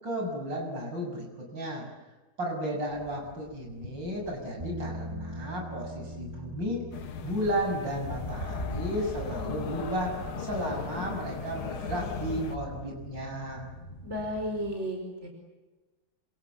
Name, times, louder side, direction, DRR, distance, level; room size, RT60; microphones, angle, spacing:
voice 1, 0.0-1.9 2.4-6.9 7.2-13.7, equal, 60° right, 1 dB, 7.7 m, -33 dB
sound 1, 2.9-14.7, equal, 25° left, 4.5 m, -42 dB
Bass guitar, 4.6-10.8, equal, 15° right, 1.8 m, -43 dB
sound 2, 6.9-12.6, left 7 dB, 85° left, 2.3 m, -39 dB
voice 2, 14.0-15.3, equal, 30° right, 2 dB, 5.5 m, -33 dB
27.0 x 27.0 x 8.1 m, 1.2 s
omnidirectional pair, 2.2 m